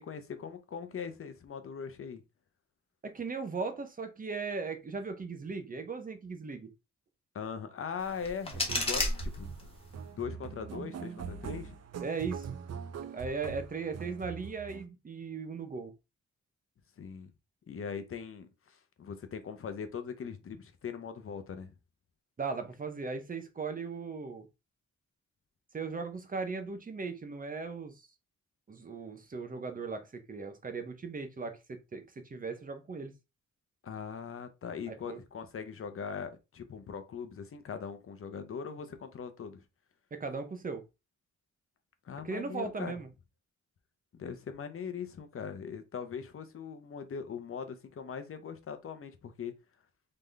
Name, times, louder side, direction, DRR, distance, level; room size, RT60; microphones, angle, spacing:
voice 1, 0.0-2.2 7.3-9.7 10.1-11.8 17.0-17.3 17.7-21.7 33.8-39.6 42.0-42.9 44.1-49.5, left 6 dB, 45° left, 0.8 m, -41 dB
voice 2, 3.0-6.7 12.0-12.5 13.1-15.9 22.4-24.5 25.7-28.0 28.7-33.1 34.9-35.2 40.1-40.8 42.2-43.1, right 4 dB, 30° right, 0.7 m, -38 dB
sound 1, 8.0-10.0, left 2 dB, 20° left, 1.2 m, -33 dB
sound 2, 8.5-14.9, right 6 dB, 60° right, 0.6 m, -42 dB
3.9 x 3.7 x 3.3 m
wide cardioid pair, 170°, 30 cm